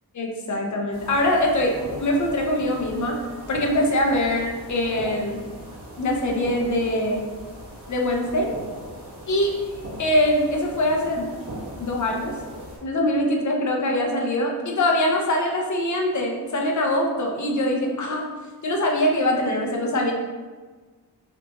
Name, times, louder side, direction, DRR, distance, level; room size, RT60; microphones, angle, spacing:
voice 1, 0.2-1.7 2.0-3.2 3.5-5.4 6.0-7.3 7.9-8.5 9.3-9.5 10.0-11.3 11.8-12.3 12.8-18.3 18.6-20.1, left 1 dB, 45° left, 1 dB, 0.6 m, -23 dB
sound 1, 0.9-12.8, right 1 dB, 45° right, 1.5 m, -39 dB
3.4 x 2.4 x 2.9 m, 1.4 s
wide cardioid pair, 125°, 40 cm